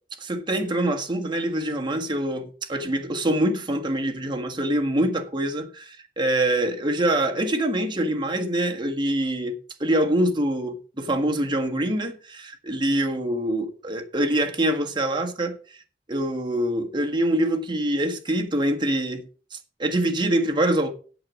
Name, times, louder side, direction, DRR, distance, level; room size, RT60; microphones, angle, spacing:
voice 1, 0.2-15.8 16.1-20.9, right 1 dB, 25° right, 1.5 m, -25 dB
8.6 x 7.6 x 6.1 m
head